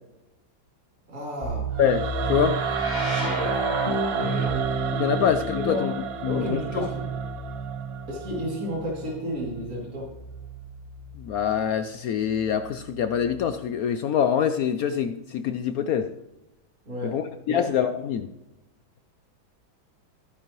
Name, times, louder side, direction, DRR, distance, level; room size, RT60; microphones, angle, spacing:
voice 1, 1.1-1.7 3.2-3.6 4.2-4.5 5.6-5.9 6.2-7.1 8.1-10.1 16.8-17.2 17.5-17.7, equal, 45° right, -5 dB, 3.3 m, -32 dB
sound 1, 1.4-11.2 12.2-13.3, right 2 dB, 25° left, 1.4 m, -31 dB
Singing / Musical instrument, 1.7-8.8, right 8 dB, 65° right, 0.9 m, -32 dB
voice 2, 1.8-2.6 4.9-5.9 6.2-6.9 11.2-16.1 17.0-18.3, left 8 dB, 75° left, 9 dB, 0.8 m, -25 dB
14.0 x 9.8 x 3.1 m, 0.89 s
omnidirectional pair, 2.1 m